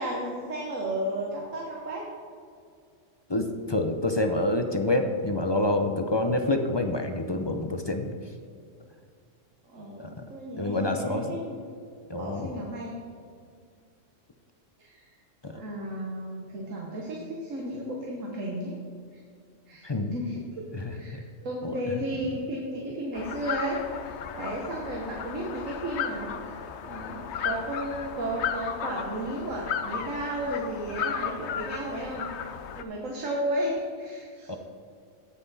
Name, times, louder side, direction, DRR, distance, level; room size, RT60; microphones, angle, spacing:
voice 1, 0.0-2.0 9.6-11.6 12.2-13.0 14.8-15.2 15.5-18.7 19.7-20.6 20.9-32.3 32.7-34.5, right 1 dB, 85° right, -2 dB, 1.6 m, -33 dB
voice 2, 3.3-8.1 10.0-10.1 10.6-11.3 12.1-12.5 15.4-15.5 19.8-20.1 20.8-20.9 21.6-21.8 34.5-34.6, left 2 dB, 30° left, 5 dB, 0.5 m, -27 dB
sound 1, 23.1-32.8, left 8 dB, 65° left, 0.9 m, -35 dB
16.5 x 5.8 x 4.1 m, 2.2 s
omnidirectional pair, 1.3 m